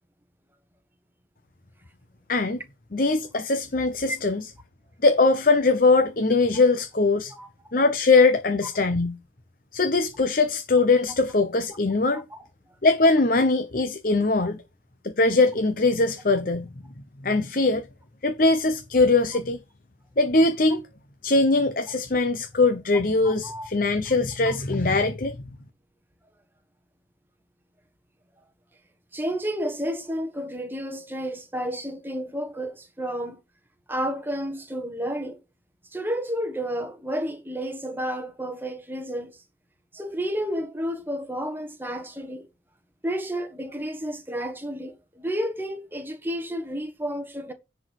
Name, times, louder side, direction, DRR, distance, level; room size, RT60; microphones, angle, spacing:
voice 1, 2.9-4.4 5.0-7.3 7.7-9.1 9.7-12.2 12.8-14.6 15.0-16.7 17.2-17.9 18.2-19.6 20.2-20.8 21.2-25.4, left 3 dB, 45° left, 0.8 m, -21 dB
voice 2, 23.2-23.7 24.4-24.6 29.1-33.4 33.9-35.4 35.9-39.4 39.9-42.5 43.0-47.5, equal, 10° right, 1.5 m, -31 dB
10.0 x 4.6 x 6.5 m
head